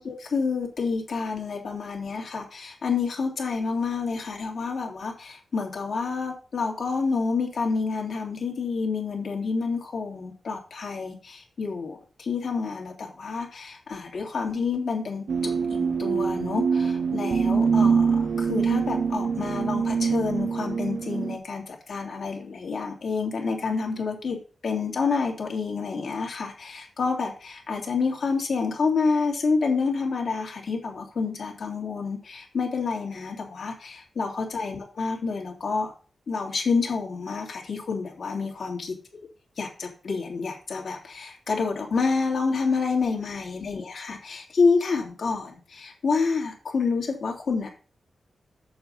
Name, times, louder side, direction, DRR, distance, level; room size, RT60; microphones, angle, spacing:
voice 1, 0.0-24.4 24.6-35.9 36.3-38.9 39.6-47.7, left 4 dB, 70° left, 0 dB, 2.8 m, -28 dB
sound 1, 15.3-21.4, right 5 dB, 75° right, 0.7 m, -24 dB
7.9 x 7.3 x 4.0 m, 0.37 s
cardioid pair, 90°, 0 cm